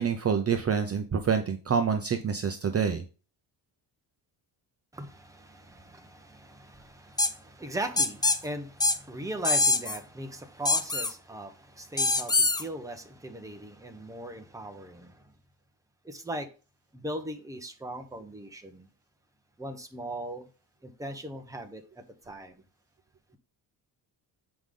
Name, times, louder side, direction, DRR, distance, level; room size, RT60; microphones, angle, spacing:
voice 1, 0.0-3.0, right 6 dB, 35° right, 0.7 m, -27 dB
voice 2, 4.9-15.3 16.0-16.5 16.9-18.9 19.6-20.5 20.8-22.6, right 1 dB, 5° right, 1.0 m, -39 dB
sound 1, 7.2-7.3 8.0-8.4 8.8-9.0 9.4-10.0 10.7-11.1 12.0-12.6, left 3 dB, 10° left, 0.4 m, -24 dB
8.1 x 5.1 x 3.8 m
cardioid pair, 130°, 44 cm